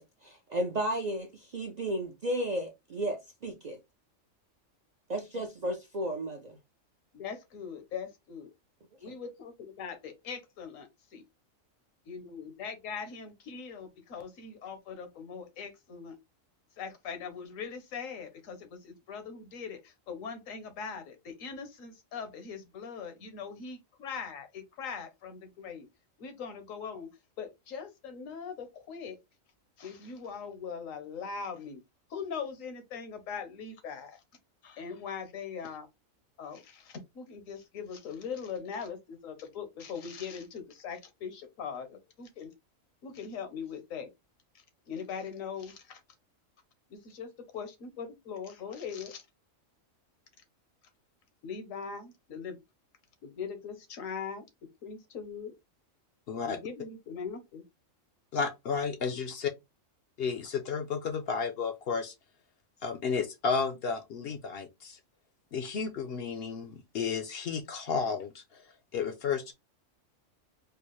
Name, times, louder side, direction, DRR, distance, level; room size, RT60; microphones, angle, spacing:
voice 1, 0.0-3.8 5.1-6.4 9.0-9.1, right 1 dB, 55° right, 0.4 m, -33 dB
voice 2, 7.2-8.5 9.0-10.8 11.1-11.2 12.1-16.2 16.8-25.9 26.2-27.1 27.4-29.2 29.8-31.8 32.1-34.2 34.6-35.9 36.4-42.5 43.0-44.1 44.5-46.0 46.9-49.2 51.4-52.6 53.2-54.4 54.8-55.5 56.4-57.6, left 6 dB, 75° left, 1.2 m, -41 dB
voice 3, 56.3-56.6 58.3-59.5 60.2-62.1 62.8-65.0 65.5-68.7 68.9-69.5, left 5 dB, 60° left, 0.7 m, -32 dB
4.5 x 2.0 x 3.0 m
omnidirectional pair, 1.4 m